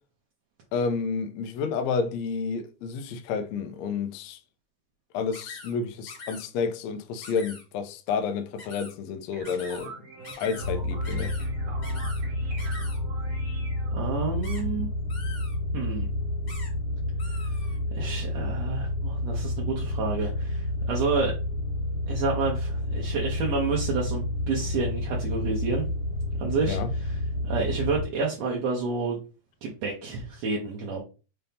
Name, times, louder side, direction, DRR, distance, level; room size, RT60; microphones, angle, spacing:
voice 1, 0.7-4.4 5.1-9.9 10.4-11.3 26.7-26.9, left 5 dB, 80° left, 1.6 m, -30 dB
sound 1, 5.3-5.7 6.1-6.5 7.2-7.6 8.6-8.9 9.4-9.9 10.2-10.7 11.0-11.5 11.8-12.2 12.6-13.0 14.4-14.6 15.1-15.5 16.5-16.7 17.2-17.8, left 3 dB, 35° left, 1.5 m, -43 dB
sound 2, 9.1-14.3, right 3 dB, 50° right, 1.5 m, -44 dB
sound 3, 10.6-28.0, left 1 dB, 60° left, 1.8 m, -30 dB
voice 2, 13.9-14.9 15.7-16.1 17.9-21.3 22.1-25.8 26.4-27.2 27.4-29.2 29.6-31.0, right 4 dB, 70° right, 1.9 m, -29 dB
5.6 x 2.7 x 3.4 m
omnidirectional pair, 3.4 m